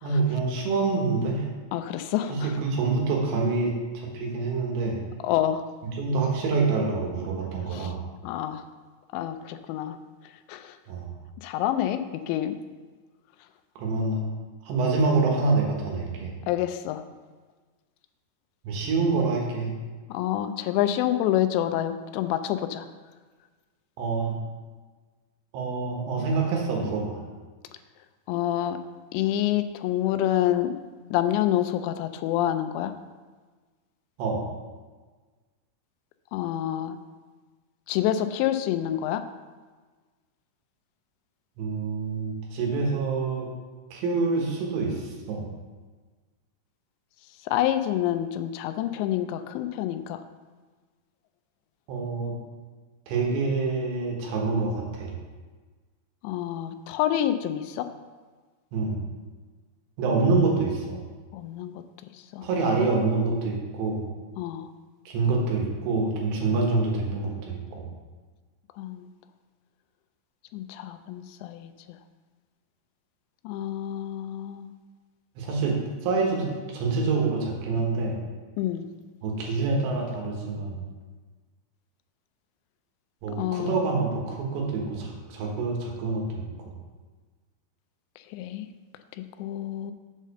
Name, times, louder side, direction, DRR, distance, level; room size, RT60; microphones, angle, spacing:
voice 1, 0.0-1.5 2.3-5.0 6.0-8.0 10.9-11.1 13.8-14.2 14.7-16.3 18.7-19.7 24.0-24.4 25.5-27.2 34.2-34.4 41.6-43.5 43.9-45.5 51.9-52.3 53.1-55.1 58.7-59.0 60.0-61.0 62.4-64.1 65.1-67.9 75.4-75.8 76.0-78.2 79.2-80.8 83.2-86.5, right 3 dB, 80° right, -1 dB, 3.6 m, -26 dB
voice 2, 1.7-2.5 5.2-5.6 7.7-7.9 8.2-8.6 9.1-10.0 10.5-10.8 11.4-12.6 16.5-17.0 20.1-22.9 28.3-28.8 29.1-30.7 31.1-32.9 36.3-37.0 37.9-39.3 47.4-50.2 56.2-57.9 61.3-61.8 62.1-62.5 64.4-64.7 68.8-69.1 70.5-72.0 73.4-74.7 78.6-78.9 83.4-83.9 88.3-88.7 89.1-89.9, left 12 dB, 90° left, 10 dB, 2.8 m, -27 dB
7.6 x 4.9 x 6.6 m, 1.4 s
omnidirectional pair, 5.0 m